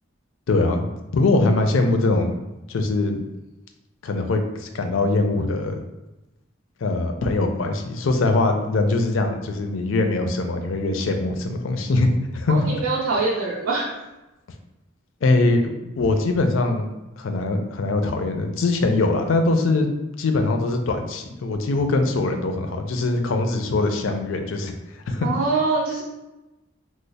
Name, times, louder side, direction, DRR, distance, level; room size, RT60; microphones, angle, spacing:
voice 1, 0.5-2.3 2.7-3.2 4.0-5.8 6.8-12.1 12.3-12.7 15.2-16.9 17.2-19.9 20.2-24.8 25.1-25.3, left 2 dB, 80° left, 5 dB, 0.4 m, -22 dB
voice 2, 12.5-13.9 25.2-26.0, right 3 dB, 90° right, -5 dB, 0.5 m, -23 dB
3.1 x 2.0 x 3.9 m, 1.0 s
head